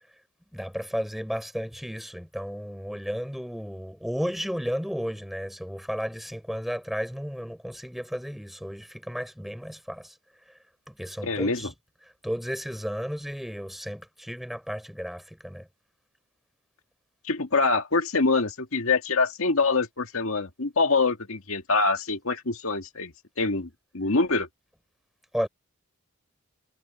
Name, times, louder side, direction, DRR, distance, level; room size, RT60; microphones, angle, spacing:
voice 1, 0.5-10.1 10.9-11.7 12.2-15.7 25.3-25.5, equal, ahead, 4.7 m, -33 dB
voice 2, 11.2-11.7 17.2-23.7 23.9-24.5, left 3 dB, 75° left, 1.9 m, -25 dB
head